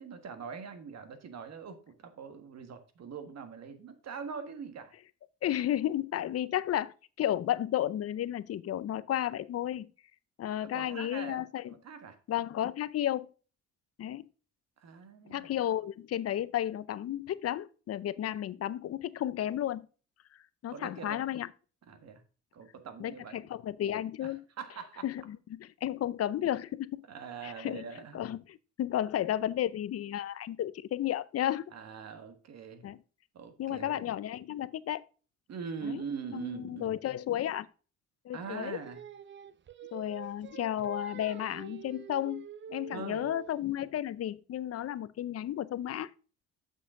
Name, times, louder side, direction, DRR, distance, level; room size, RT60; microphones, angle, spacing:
voice 1, 0.0-4.9 10.6-12.2 14.8-15.5 20.7-21.2 21.9-22.2 22.5-23.4 24.2-25.0 27.1-28.3 31.7-32.9 33.3-34.0 35.5-37.0 38.3-39.0 42.9-43.3, right 6 dB, 60° right, 1.6 m, -43 dB
voice 2, 5.4-9.9 10.4-11.7 12.3-13.3 14.0-14.3 15.3-19.9 20.6-21.5 23.0-24.4 25.0-27.1 27.4-27.8 28.1-31.6 32.8-33.0 33.6-35.0 35.8-36.0 36.3-37.7 38.2-38.8 39.9-46.1, left 11 dB, 55° left, 0.5 m, -33 dB
Singing, 38.4-43.6, right 8 dB, 40° right, 0.5 m, -47 dB
7.3 x 6.7 x 3.7 m
cardioid pair, 90°, 30 cm